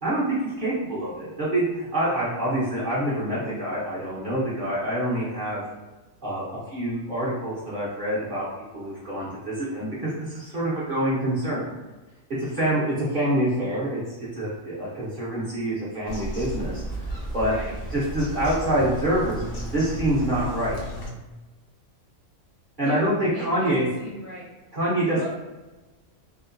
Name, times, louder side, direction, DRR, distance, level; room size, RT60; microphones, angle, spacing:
voice 1, 0.0-5.6 6.2-11.7 12.4-17.5 17.9-19.4 19.7-20.8 22.8-23.9 24.7-25.3, right 1 dB, 45° right, -8 dB, 0.7 m, -26 dB
Bird vocalization bird call bird song, 16.1-21.1, right 1 dB, 55° left, 0.7 m, -33 dB
voice 2, 22.8-24.5 25.1-25.3, equal, 20° left, -8 dB, 0.5 m, -38 dB
2.8 x 2.1 x 2.5 m, 1.1 s
omnidirectional pair, 1.4 m